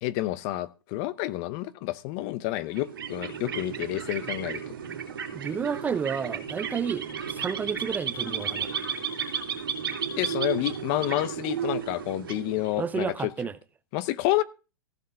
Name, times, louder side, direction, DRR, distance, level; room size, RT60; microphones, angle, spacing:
voice 1, 0.0-4.6 10.2-13.3 13.9-14.4, left 16 dB, 40° left, 0.8 m, -29 dB
sound 1, 2.7-13.1, right 7 dB, 75° right, 2.9 m, -33 dB
voice 2, 5.3-8.7 12.8-13.6, right 6 dB, 15° right, 0.6 m, -31 dB
15.0 x 5.7 x 6.6 m
hypercardioid pair, 120°, 12 cm